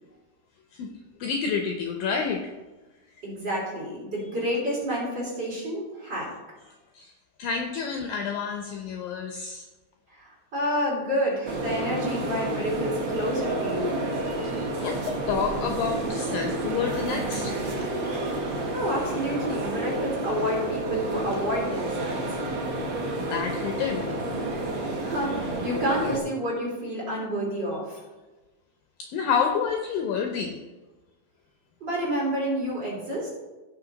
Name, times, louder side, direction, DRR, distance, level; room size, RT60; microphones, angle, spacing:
voice 1, 1.2-2.5 6.9-7.1 7.4-9.7 14.3-18.1 23.2-24.2 29.0-30.6, left 6 dB, 75° left, 4 dB, 2.2 m, -29 dB
voice 2, 3.2-6.3 10.1-14.1 18.7-22.2 25.0-28.0 31.8-33.3, equal, 30° right, -4 dB, 3.0 m, -29 dB
Hagia Sophia Istanbul, 11.4-26.2, right 2 dB, 50° right, 1.4 m, -30 dB
16.5 x 5.8 x 4.0 m, 1.2 s
omnidirectional pair, 4.8 m